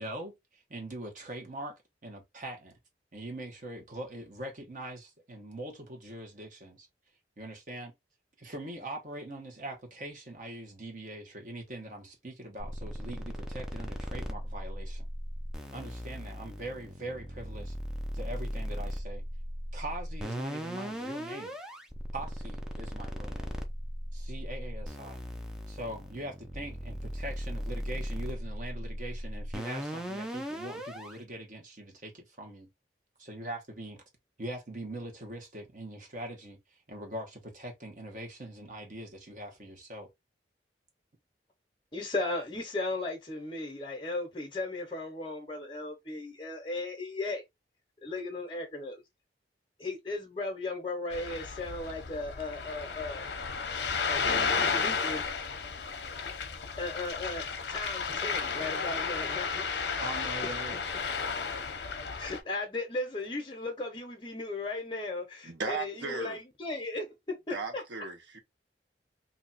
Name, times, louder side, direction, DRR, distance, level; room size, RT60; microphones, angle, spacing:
voice 1, 0.0-2.8 3.1-6.9 7.4-7.9 8.4-15.1 15.7-17.7 18.1-19.2 19.7-21.6 22.1-23.6 24.1-25.2 25.7-32.7 33.2-34.0 34.4-40.1 60.0-60.8, right 1 dB, 45° right, 1.1 m, -42 dB
sound 1, 12.6-31.2, equal, 5° right, 0.5 m, -38 dB
voice 2, 41.9-47.4 48.0-49.0 49.8-53.2 54.1-55.2 56.8-59.6 62.2-67.8, left 2 dB, 25° left, 0.8 m, -36 dB
Ocean, 51.1-62.4, left 5 dB, 70° left, 0.6 m, -33 dB
voice 3, 65.4-66.4 67.5-68.4, right 4 dB, 80° right, 1.0 m, -36 dB
2.7 x 2.3 x 4.0 m
head